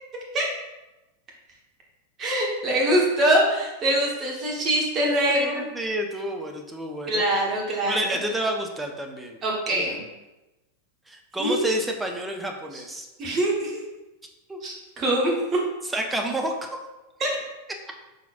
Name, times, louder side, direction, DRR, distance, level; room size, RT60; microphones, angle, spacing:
voice 1, 2.2-5.7 7.1-8.2 9.4-10.0 11.4-11.7 13.2-13.8 14.6-15.6 17.2-17.3, right 1 dB, 30° right, -2 dB, 1.1 m, -23 dB
voice 2, 5.3-7.2 7.9-9.4 9.7-9.9 11.1-13.1 14.5-14.6 15.9-16.8, right 1 dB, 10° right, 3 dB, 0.5 m, -29 dB
5.6 x 3.9 x 2.4 m, 1.0 s
figure-of-eight pair, 90°, 0 cm